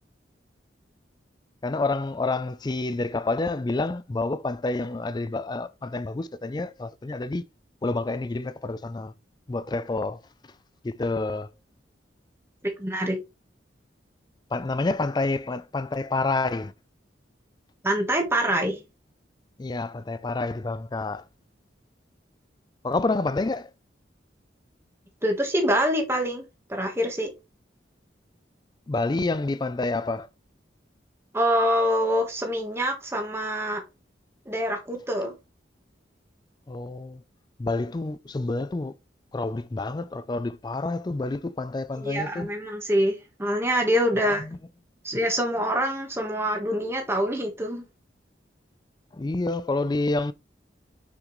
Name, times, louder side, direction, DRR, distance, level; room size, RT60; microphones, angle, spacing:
voice 1, 1.6-7.5 7.8-9.1 9.5-10.2 10.8-11.5 14.5-16.7 19.6-21.2 22.8-23.7 28.9-30.3 36.7-37.2 37.6-38.9 39.3-42.5 44.2-44.6 49.1-50.3, left 2 dB, 25° left, 0.4 m, -28 dB
voice 2, 12.8-13.2 17.8-18.8 25.2-26.4 26.7-27.3 31.3-33.8 34.5-35.4 42.0-44.5 45.0-47.8, equal, 15° right, 1.3 m, -25 dB
6.0 x 6.0 x 3.1 m
head